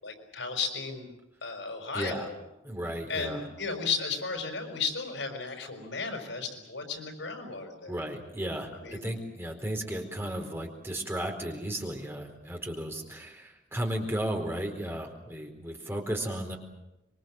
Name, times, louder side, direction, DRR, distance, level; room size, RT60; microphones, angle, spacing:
voice 1, 0.0-1.1 1.4-2.4 3.1-7.9 8.8-9.1, left 5 dB, 85° left, 5 dB, 5.7 m, -34 dB
voice 2, 1.9-2.3 2.6-3.4 7.9-16.6, right 1 dB, 15° right, 2 dB, 4.3 m, -34 dB
25.5 x 23.5 x 7.8 m, 0.96 s
head